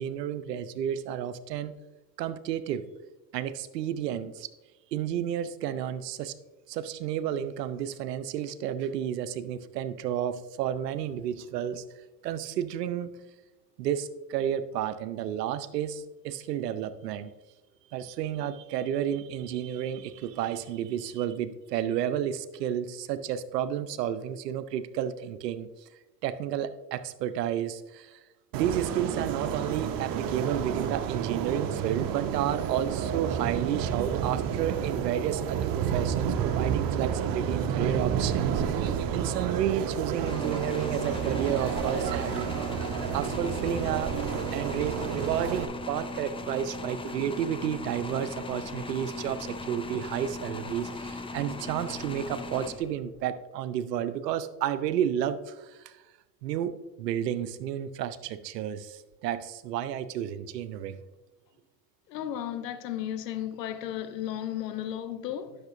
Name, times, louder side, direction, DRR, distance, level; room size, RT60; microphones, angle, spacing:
voice 1, 0.0-1.7 2.2-2.9 3.3-4.5 4.9-6.3 6.7-11.8 12.2-13.3 13.8-17.3 17.9-25.9 26.2-28.2 28.5-44.2 44.5-56.0 56.4-61.0, right 10 dB, 85° right, 0.6 m, -31 dB
sound 1, 28.5-45.6, right 8 dB, 45° right, 0.8 m, -30 dB
sound 2, 40.2-53.2, left 3 dB, 10° left, 0.5 m, -38 dB
voice 2, 62.1-65.6, left 11 dB, 85° left, 0.6 m, -34 dB
10.5 x 6.6 x 2.5 m
hypercardioid pair, 70°, 48 cm